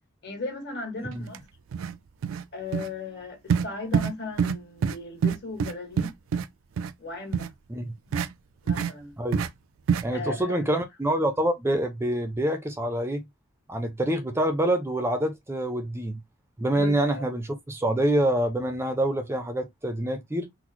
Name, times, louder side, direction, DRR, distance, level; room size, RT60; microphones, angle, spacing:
voice 1, 0.2-1.4 2.5-6.1 7.0-7.5 8.6-9.2 10.1-10.7 16.7-17.2, left 3 dB, 55° left, 1.5 m, -37 dB
sound 1, 1.3-1.4 1.7-1.9 2.2-2.4 2.7-2.9 3.5-3.7 3.9-4.1 4.4-4.6 4.8-5.0 5.2-6.5 6.8-6.9 7.3-7.5 8.1-8.3 8.7-8.9 9.3-9.5 9.9-10.0, right 7 dB, 75° right, 0.4 m, -25 dB
voice 2, 10.0-13.2 13.7-16.2 16.6-20.5, right 1 dB, 10° right, 0.4 m, -26 dB
3.9 x 2.1 x 2.9 m
head